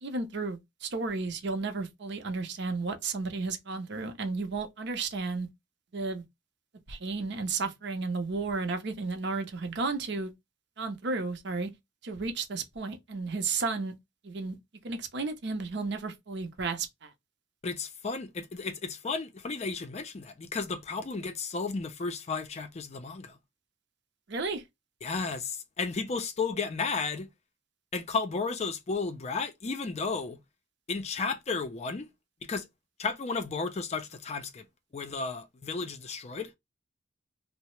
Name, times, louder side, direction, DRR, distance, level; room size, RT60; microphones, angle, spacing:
voice 1, 0.0-5.5 5.9-6.2 6.9-10.3 10.8-11.7 12.0-13.9 14.2-14.6 14.8-17.1 24.3-24.6, right 3 dB, 65° right, 0.7 m, -33 dB
voice 2, 17.6-23.4 25.0-27.3 27.9-30.4 30.9-32.1 32.4-32.7 33.0-34.7 34.9-36.5, left 4 dB, 35° left, 0.4 m, -33 dB
2.8 x 2.0 x 3.0 m
head